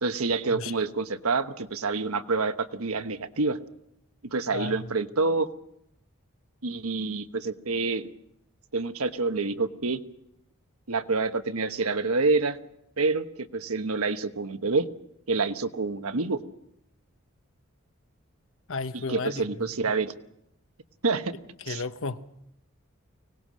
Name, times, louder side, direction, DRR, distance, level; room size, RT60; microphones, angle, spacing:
voice 1, 0.0-3.6 4.3-5.5 6.6-8.1 8.7-10.0 10.9-12.6 13.0-14.9 15.3-16.4 19.1-20.1 21.0-21.3 21.7-21.8, right 3 dB, 85° right, 1.2 m, -27 dB
voice 2, 4.5-4.9 18.7-20.0 21.6-22.2, left 3 dB, 65° left, 1.0 m, -34 dB
25.0 x 19.0 x 6.3 m
head